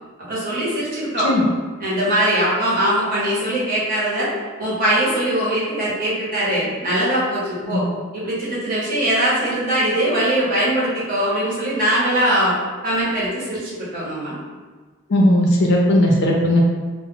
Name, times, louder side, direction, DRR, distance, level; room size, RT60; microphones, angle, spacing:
voice 1, 0.3-1.3 1.8-4.3 4.6-7.8 8.1-12.6 12.8-14.4, right 1 dB, 40° right, -7 dB, 0.8 m, -21 dB
voice 2, 15.1-16.6, left 1 dB, 55° left, -1 dB, 0.4 m, -16 dB
2.1 x 2.0 x 3.6 m, 1.4 s
head